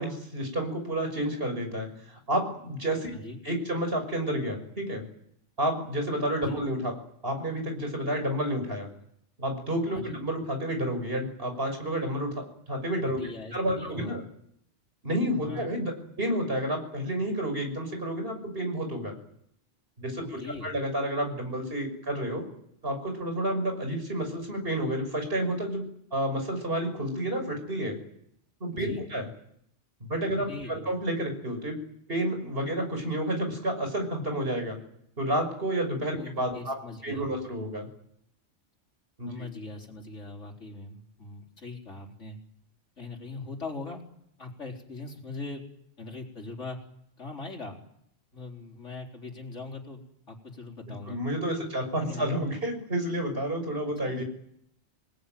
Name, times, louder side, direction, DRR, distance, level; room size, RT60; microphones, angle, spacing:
voice 1, 0.0-3.1 3.4-5.0 5.6-6.9 7.2-8.9 9.4-12.3 12.7-13.2 13.5-14.2 15.0-19.2 20.0-22.4 22.8-25.8 26.1-28.0 28.6-29.3 30.0-31.8 32.1-34.8 35.2-36.7 37.0-37.9 39.2-39.3 51.1-54.2, right 1 dB, 50° right, 5 dB, 6.3 m, -30 dB
voice 2, 13.1-14.3 15.4-15.7 20.2-20.7 28.7-29.1 30.3-30.9 36.2-37.3 39.3-42.4 43.0-44.0 44.4-45.6 46.0-46.8 47.2-47.8 48.3-51.2 52.0-52.5 54.0-54.2, left 3 dB, 75° left, 1 dB, 4.5 m, -41 dB
27.5 x 19.0 x 9.3 m, 0.72 s
omnidirectional pair, 1.2 m